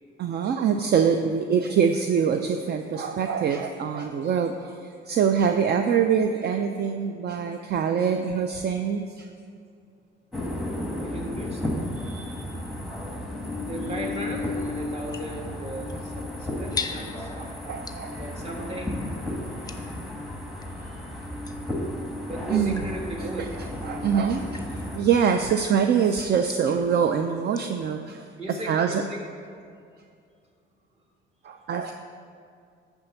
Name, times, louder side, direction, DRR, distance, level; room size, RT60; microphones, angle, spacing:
voice 1, 0.2-9.3 17.6-18.2 22.5-22.8 23.8-28.3 28.7-29.0 31.4-31.9, right 7 dB, 55° right, 6 dB, 0.5 m, -24 dB
sound 1, 10.3-25.0, left 1 dB, ahead, 1.2 m, -33 dB
voice 2, 11.0-12.5 13.6-17.3 18.2-19.1 19.6-19.9 20.6-21.1 22.2-23.5 28.4-29.2 30.9-31.0, right 1 dB, 30° right, 0 dB, 1.5 m, -37 dB
sound 2, 13.5-20.8 21.4-27.9, left 4 dB, 20° left, 0.6 m, -43 dB
10.0 x 3.5 x 6.6 m, 2.3 s
cardioid pair, 90°, 20 cm